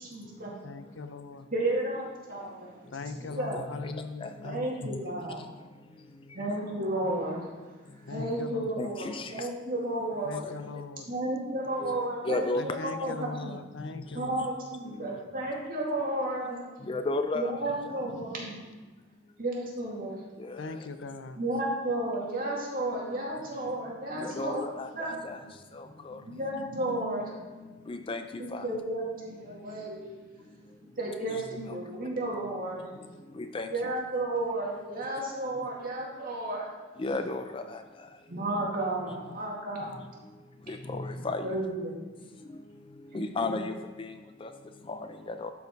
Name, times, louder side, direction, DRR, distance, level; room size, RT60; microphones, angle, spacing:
voice 1, 0.0-0.5 1.5-2.8 3.2-3.6 4.4-5.4 6.3-7.5 8.1-10.3 11.1-13.6 14.1-16.6 17.3-18.5 19.4-20.2 21.4-24.6 24.9-25.2 26.1-27.7 28.4-30.5 31.0-32.9 33.7-36.7 38.3-39.9 41.2-41.9 43.1-43.5, right 1 dB, 45° right, -3 dB, 2.2 m, -33 dB
voice 2, 0.6-1.5 2.9-4.7 8.1-8.9 10.3-11.1 12.5-14.3 20.6-21.4, left 4 dB, 75° left, 10 dB, 0.6 m, -40 dB
voice 3, 8.8-9.3 11.8-11.9 12.3-12.8 16.9-17.7 20.4-20.6 24.2-25.4 26.1-26.2 27.9-28.2 28.5-28.6 33.5-33.7 37.0-37.6 40.9-41.4 43.1-43.7 44.4-44.5 44.9-45.0 45.4-45.5, left 2 dB, 25° left, 8 dB, 0.4 m, -32 dB
12.0 x 4.7 x 4.7 m, 1.3 s
head